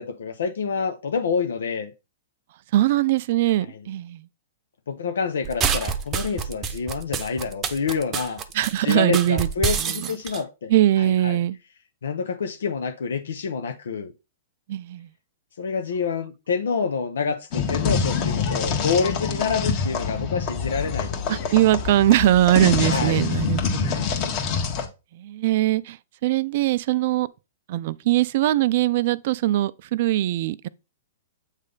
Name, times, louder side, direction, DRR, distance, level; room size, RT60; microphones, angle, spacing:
voice 1, 0.0-1.9 3.6-3.8 4.9-8.4 8.8-10.7 11.0-11.4 12.0-14.1 15.6-21.6 22.9-23.3 23.8-24.1, left 5 dB, 80° left, 0.7 m, -27 dB
voice 2, 2.7-4.2 8.5-9.5 9.8-9.9 10.7-11.6 14.7-15.1 21.3-24.1 25.1-26.0 26.2-27.3 27.7-30.7, right 14 dB, 55° right, 0.4 m, -21 dB
sound 1, 5.4-10.4, right 6 dB, 25° right, 0.7 m, -27 dB
sound 2, 17.5-24.9, left 5 dB, 40° left, 1.4 m, -26 dB
8.1 x 3.3 x 3.8 m
hypercardioid pair, 135°, 0 cm